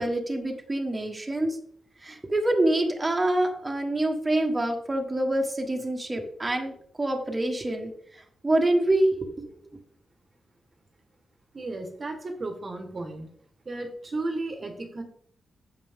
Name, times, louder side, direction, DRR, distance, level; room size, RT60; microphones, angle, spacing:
voice 1, 0.0-1.6 2.0-9.4, right 1 dB, 15° right, 1 dB, 1.3 m, -26 dB
voice 2, 11.5-13.3 13.6-15.0, right 2 dB, 35° right, 5 dB, 1.3 m, -34 dB
9.0 x 7.7 x 3.6 m, 0.62 s
wide cardioid pair, 135°, 0 cm